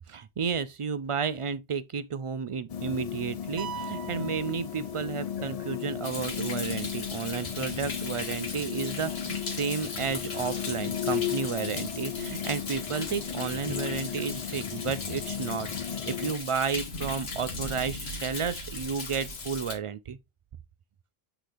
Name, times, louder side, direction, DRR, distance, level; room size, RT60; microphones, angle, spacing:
voice 1, 0.1-20.2, right 6 dB, 60° right, 0.3 m, -32 dB
sound 1, 2.7-16.3, left 9 dB, 45° left, 0.5 m, -35 dB
sound 2, 3.6-5.5, right 7 dB, 80° right, 0.9 m, -41 dB
Thunder, 6.0-19.8, left 3 dB, 75° left, 1.6 m, -38 dB
7.6 x 4.0 x 3.3 m
omnidirectional pair, 1.1 m